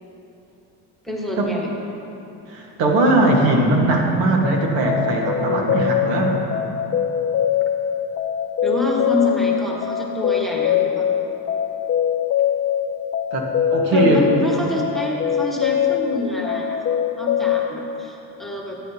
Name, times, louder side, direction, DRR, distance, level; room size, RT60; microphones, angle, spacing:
voice 1, 1.0-1.7 8.6-11.1 13.9-18.8, left 1 dB, ahead, -2 dB, 1.4 m, -27 dB
voice 2, 2.5-6.4 13.3-14.2, right 2 dB, 75° right, 0 dB, 1.6 m, -19 dB
sound 1, 4.4-17.7, left 9 dB, 30° left, 0.4 m, -23 dB
14.5 x 8.9 x 2.9 m, 3.0 s
supercardioid pair, 100°, 45 cm